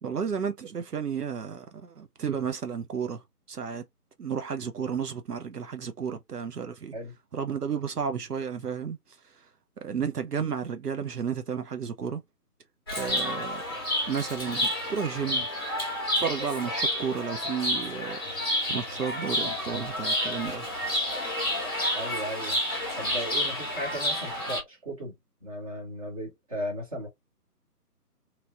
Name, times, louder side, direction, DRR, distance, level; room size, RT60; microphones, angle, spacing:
voice 1, 0.0-3.2 3.5-3.8 4.2-6.9 7.3-9.0 9.8-12.2 13.0-13.6 14.1-15.5 16.1-18.2 18.7-20.7, right 7 dB, 75° right, 0.6 m, -32 dB
Chirp tweet, 12.9-24.6, left 1 dB, 15° left, 0.8 m, -30 dB
voice 2, 21.9-22.6 23.0-25.1 25.4-27.1, equal, 20° right, 1.2 m, -36 dB
3.0 x 2.7 x 2.3 m
figure-of-eight pair, 150°, 47 cm